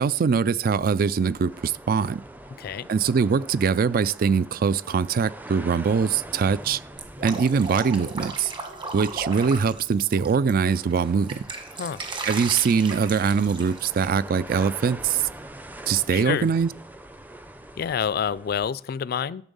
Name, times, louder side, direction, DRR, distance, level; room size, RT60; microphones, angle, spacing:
voice 1, 0.0-2.2 2.9-6.8 7.2-8.5 8.9-11.4 12.2-15.3 15.9-16.7, right 6 dB, 50° right, 0.3 m, -22 dB
sound 1, 0.8-18.7, right 1 dB, 10° right, 0.6 m, -44 dB
Drip, 7.0-10.5 10.9-14.0, right 3 dB, 25° right, 1.5 m, -36 dB
voice 2, 11.7-12.0 16.1-16.5 17.8-19.4, left 7 dB, 55° left, 0.3 m, -28 dB
12.5 x 7.1 x 5.4 m
head